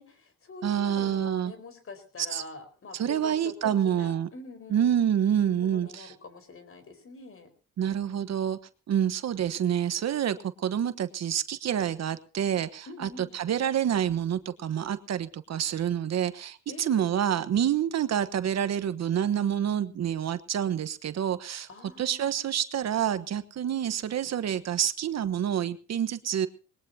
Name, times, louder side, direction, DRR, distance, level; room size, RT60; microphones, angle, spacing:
voice 1, 0.0-5.0 5.6-7.5 12.9-13.4 16.7-17.1 21.7-22.3, left 3 dB, 45° left, 10 dB, 4.7 m, -45 dB
voice 2, 0.6-1.5 2.3-2.4 2.9-4.3 4.7-6.1 7.8-8.6 8.9-21.7 22.0-26.5, right 9 dB, 60° right, 12 dB, 1.2 m, -28 dB
21.0 x 19.5 x 2.8 m, 0.36 s
cardioid pair, 90°, 30 cm